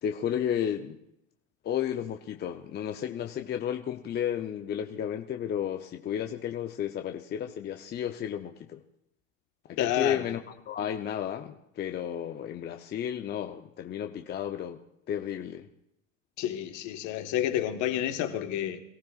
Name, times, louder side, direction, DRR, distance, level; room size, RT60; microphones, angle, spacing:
voice 1, 0.0-1.0 1.6-8.8 9.7-10.4 10.7-14.8 15.1-15.7, left 9 dB, 25° left, 0.6 m, -32 dB
voice 2, 9.8-10.2 16.4-18.8, left 11 dB, 50° left, 1.5 m, -29 dB
22.5 x 14.5 x 2.4 m
hypercardioid pair, 105°, 38 cm